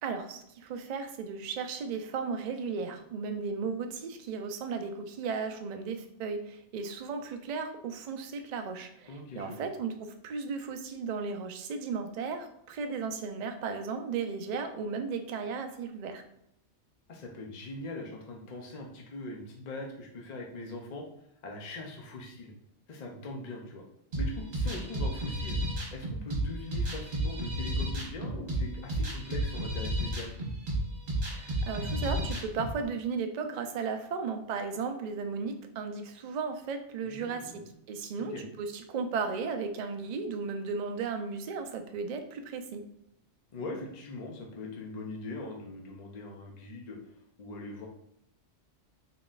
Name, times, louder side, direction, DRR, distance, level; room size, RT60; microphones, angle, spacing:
voice 1, 0.0-16.2 31.3-37.6 37.9-42.8, right 5 dB, 70° right, 6 dB, 0.4 m, -35 dB
voice 2, 9.1-9.6 17.1-21.0 21.4-22.5 22.9-23.8 24.1-25.6 25.9-30.3 37.0-37.6 38.2-38.4 43.5-47.0 47.4-47.9, left 2 dB, 50° left, 0 dB, 0.5 m, -41 dB
sound 1, 24.1-32.7, right 1 dB, 45° right, 1.2 m, -32 dB
3.8 x 3.7 x 2.4 m, 0.78 s
omnidirectional pair, 1.3 m